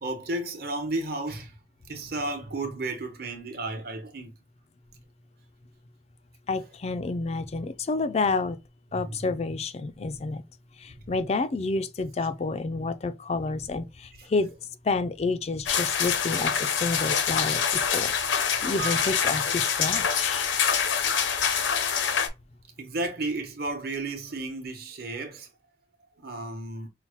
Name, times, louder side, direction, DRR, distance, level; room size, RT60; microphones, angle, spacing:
voice 1, 0.0-1.5 1.9-4.3 9.0-9.2 14.2-14.3 18.7-19.1 22.8-25.5 26.2-26.9, right 2 dB, 50° right, 1.0 m, -33 dB
voice 2, 6.5-8.6 8.9-10.4 10.8-14.5 14.8-18.1 18.6-20.5, left 3 dB, 35° left, 0.3 m, -29 dB
sound 1, 15.7-22.3, left 7 dB, 80° left, 0.7 m, -25 dB
5.5 x 2.1 x 2.9 m
head